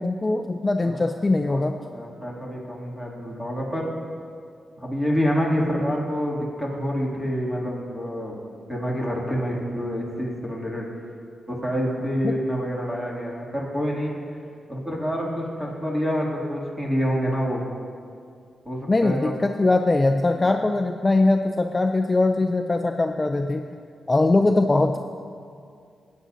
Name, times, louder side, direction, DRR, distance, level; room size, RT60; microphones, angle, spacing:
voice 1, 0.0-1.8 12.2-12.3 18.9-23.6 24.1-25.0, left 2 dB, 25° left, 5 dB, 0.4 m, -21 dB
voice 2, 0.8-1.1 1.5-3.9 4.8-8.4 8.7-10.9 11.5-14.4 14.7-17.6 18.6-19.3 24.4-24.5, equal, 10° right, -4 dB, 2.5 m, -27 dB
16.0 x 9.4 x 2.7 m, 2.3 s
cardioid pair, 95°, 0 cm